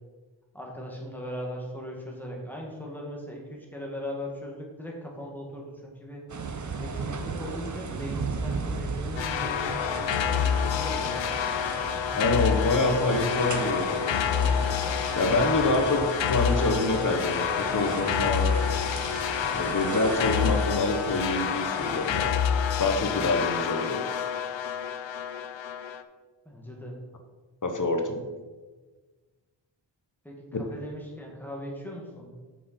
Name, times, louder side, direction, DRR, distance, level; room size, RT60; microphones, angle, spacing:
voice 1, 0.5-6.2 6.8-11.2 26.5-27.0 30.2-32.3, equal, 5° left, -2 dB, 2.0 m, -39 dB
sound 1, 6.3-22.4, right 4 dB, 40° right, 0.8 m, -36 dB
sound 2, 9.2-26.0, left 8 dB, 75° left, 0.6 m, -28 dB
voice 2, 12.1-14.6 15.1-18.5 19.5-22.5 22.8-24.0 27.6-28.3 30.5-30.6, left 2 dB, 40° left, 5 dB, 1.2 m, -26 dB
7.5 x 6.5 x 4.4 m, 1.3 s
wide cardioid pair, 95°, 46 cm